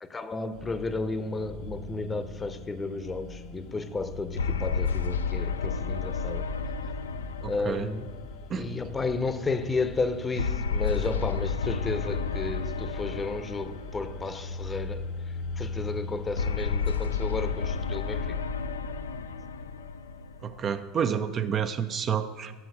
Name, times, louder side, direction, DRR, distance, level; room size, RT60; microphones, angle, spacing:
voice 1, 0.0-6.4 7.4-8.1 8.5-15.1 15.6-18.4, left 3 dB, 20° left, 11 dB, 0.7 m, -32 dB
sound 1, 0.5-18.2, left 3 dB, 55° left, 0.7 m, -40 dB
sound 2, 4.4-8.9 10.4-14.7 16.4-20.9, left 5 dB, 80° left, 0.4 m, -31 dB
voice 2, 20.4-22.5, right 7 dB, 35° right, 10 dB, 0.5 m, -29 dB
7.0 x 6.0 x 7.6 m, 1.3 s
figure-of-eight pair, 75°, 0 cm